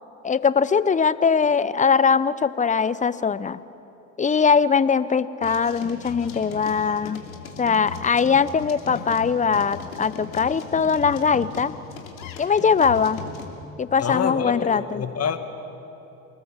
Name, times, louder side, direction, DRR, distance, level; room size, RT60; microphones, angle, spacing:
voice 1, 0.2-3.6 4.2-7.2 7.6-11.7 12.4-13.2 13.8-15.0, left 6 dB, 20° left, 16 dB, 0.8 m, -21 dB
sound 1, 5.4-13.5, left 5 dB, 85° left, 2.9 m, -38 dB
voice 2, 14.0-15.4, left 7 dB, 35° left, 7 dB, 2.1 m, -27 dB
27.0 x 19.5 x 7.4 m, 2.9 s
hypercardioid pair, 70°, 40 cm